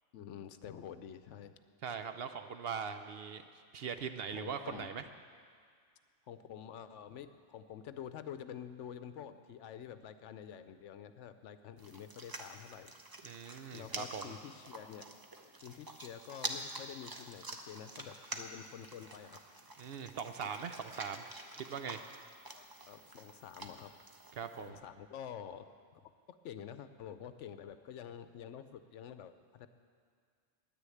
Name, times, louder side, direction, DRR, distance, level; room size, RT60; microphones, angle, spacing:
voice 1, 0.1-1.5 4.3-5.0 6.3-12.9 13.7-15.0 15.6-19.4 20.4-20.5 22.5-23.9 24.6-25.7 26.3-29.7, left 9 dB, 75° left, 11 dB, 0.9 m, -48 dB
voice 2, 1.8-3.4 3.7-5.0 13.2-14.3 19.8-21.2 21.6-22.0 24.4-24.8, right 6 dB, 60° right, 8 dB, 0.7 m, -41 dB
sound 1, 11.8-24.7, right 2 dB, 25° right, 0.6 m, -47 dB
10.0 x 9.8 x 8.4 m, 2.1 s
omnidirectional pair, 1.3 m